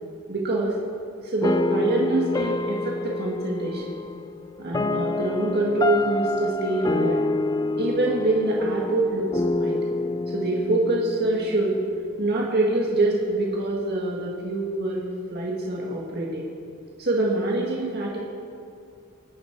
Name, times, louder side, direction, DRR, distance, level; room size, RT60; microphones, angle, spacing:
voice 1, 0.3-0.8 1.2-4.0 4.6-7.2 7.8-9.8 10.3-11.8 12.2-16.4 17.0-18.2, right 2 dB, 50° right, -3 dB, 1.9 m, -25 dB
sound 1, 1.4-12.5, left 2 dB, 15° left, 0.3 m, -27 dB
25.0 x 9.7 x 4.6 m, 2.4 s
head